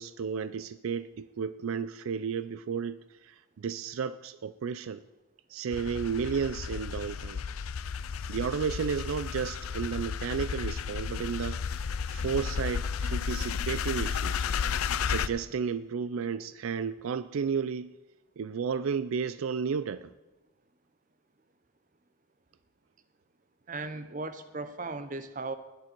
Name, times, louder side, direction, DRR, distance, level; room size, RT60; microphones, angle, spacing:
voice 1, 0.0-5.0 5.5-7.4 8.3-14.5 15.1-17.9 18.4-20.1, right 6 dB, 75° right, 13 dB, 0.4 m, -33 dB
sound 1, 5.7-15.3, left 6 dB, 90° left, 0.5 m, -33 dB
voice 2, 23.7-25.6, right 3 dB, 40° right, 10 dB, 0.8 m, -37 dB
19.5 x 6.9 x 4.5 m, 1.1 s
head